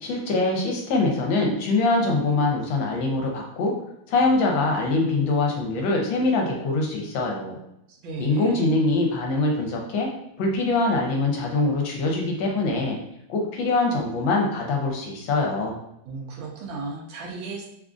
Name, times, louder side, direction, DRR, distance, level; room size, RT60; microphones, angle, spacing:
voice 1, 0.0-3.7 4.1-7.6 8.2-10.1 10.4-13.0 13.3-15.8, left 2 dB, 75° left, 0 dB, 1.3 m, -23 dB
voice 2, 7.9-8.6 16.0-17.7, right 3 dB, 75° right, -1 dB, 1.4 m, -34 dB
3.6 x 2.4 x 2.4 m, 0.80 s
omnidirectional pair, 2.3 m